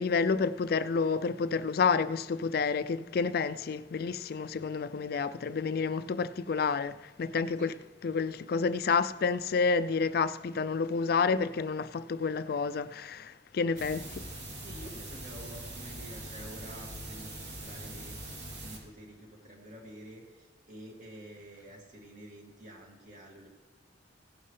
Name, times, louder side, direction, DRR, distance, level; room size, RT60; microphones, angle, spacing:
voice 1, 0.0-7.7 8.0-14.3, left 5 dB, 55° left, 0.4 m, -29 dB
sound 1, 13.8-18.8, right 1 dB, 75° right, 3.0 m, -42 dB
voice 2, 14.6-23.5, right 1 dB, 45° right, 2.3 m, -49 dB
16.5 x 11.0 x 3.3 m
head